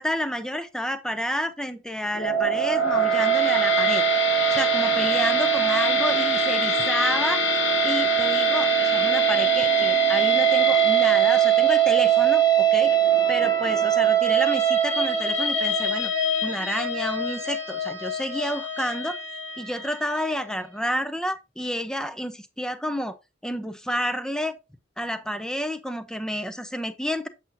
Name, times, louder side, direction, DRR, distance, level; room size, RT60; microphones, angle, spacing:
voice 1, 0.0-4.0 4.5-7.4 7.8-12.9 13.3-16.1 16.4-19.2 19.6-23.2 23.4-24.5 25.0-27.3, equal, 5° left, 0.7 m, -30 dB
sound 1, 2.1-20.4, right 5 dB, 70° left, 3.0 m, -22 dB
8.1 x 7.3 x 2.7 m
head